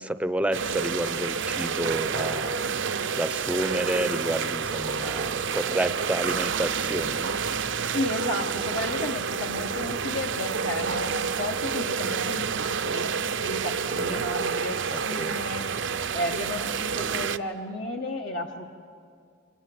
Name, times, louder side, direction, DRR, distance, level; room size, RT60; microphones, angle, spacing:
voice 1, 0.0-2.7 3.2-7.4 14.0-14.2 14.9-15.4, right 1 dB, 5° right, 11 dB, 0.7 m, -30 dB
sound 1, 0.5-17.4, right 6 dB, 60° right, 0.7 m, -29 dB
voice 2, 7.9-13.1 13.4-15.6 16.1-18.7, left 1 dB, 60° left, 1 dB, 1.3 m, -33 dB
29.0 x 26.5 x 7.8 m, 2.3 s
head